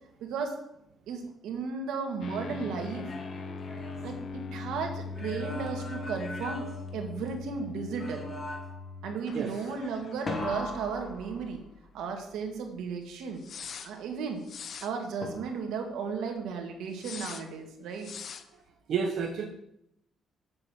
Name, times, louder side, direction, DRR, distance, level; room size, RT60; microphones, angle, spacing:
voice 1, 0.2-0.6 1.1-3.1 4.0-6.6 6.9-8.3 9.0-11.6 11.9-13.4 13.8-14.4 14.8-18.1, right 5 dB, 85° right, 4 dB, 1.8 m, -35 dB
sound 1, 2.2-11.4 11.6-11.7 13.4-13.9 14.4-14.9 17.0-17.4 18.0-18.4, left 4 dB, 45° left, 0.7 m, -41 dB
sound 2, 2.8-4.7 5.1-7.5 8.0-8.9 10.3-11.9 15.2-15.9, left 1 dB, 25° left, 2.0 m, -40 dB
voice 2, 18.9-19.5, right 6 dB, 60° right, 1 dB, 1.1 m, -30 dB
7.6 x 6.1 x 7.6 m, 0.78 s
cardioid pair, 145°, 0 cm